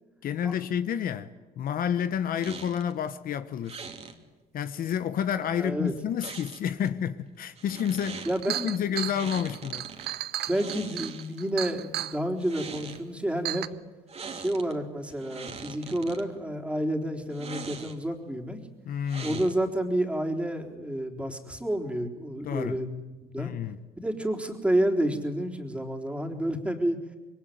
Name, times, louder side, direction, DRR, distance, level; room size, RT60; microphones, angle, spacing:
voice 1, 0.2-3.9 4.5-9.9 18.9-19.4 22.4-22.8 23.4-23.8, left 8 dB, 60° left, 1.2 m, -30 dB
sound 1, 2.4-2.9 3.7-4.2 6.2-6.9 7.6-8.4 9.1-10.1 10.5-11.5 12.3-13.0 14.1-14.7 15.1-16.2 17.3-18.2 19.1-19.8, right 5 dB, 40° right, 3.0 m, -42 dB
voice 2, 5.5-5.9 8.2-9.1 10.4-13.7 14.3-18.6 19.2-23.5 24.0-27.0, right 1 dB, 5° right, 3.9 m, -30 dB
Chink clink, 7.8-7.9 8.2-12.2 12.9-13.0 13.5-13.7, right 14 dB, 75° right, 1.0 m, -34 dB
26.5 x 22.0 x 9.4 m
cardioid pair, 110°, 17 cm